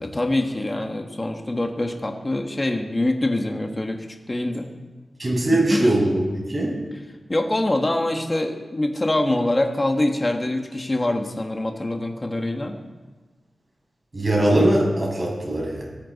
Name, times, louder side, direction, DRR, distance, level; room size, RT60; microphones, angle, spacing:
voice 1, 0.0-4.7 5.7-5.9 7.3-12.8, left 1 dB, 25° left, 3 dB, 1.4 m, -24 dB
voice 2, 5.2-6.8 14.1-15.8, right 1 dB, 35° right, -2 dB, 6.2 m, -21 dB
22.5 x 15.0 x 4.1 m, 1.3 s
wide cardioid pair, 120°, 0 cm